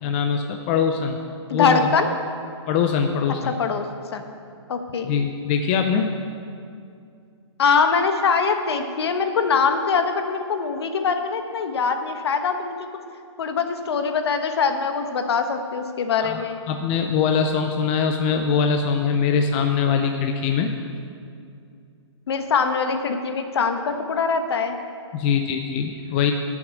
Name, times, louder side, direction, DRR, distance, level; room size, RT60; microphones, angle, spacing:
voice 1, 0.0-1.2 1.5-1.8 2.7-3.5 5.0-6.1 16.2-20.7 25.1-26.3, left 6 dB, 20° left, 5 dB, 0.5 m, -22 dB
voice 2, 1.5-2.1 3.5-3.9 4.1-4.2 4.7-5.1 7.6-12.8 13.4-16.6 22.3-24.8, left 5 dB, 60° left, 7 dB, 1.2 m, -23 dB
11.0 x 7.2 x 8.1 m, 2.4 s
hypercardioid pair, 160°, 15 cm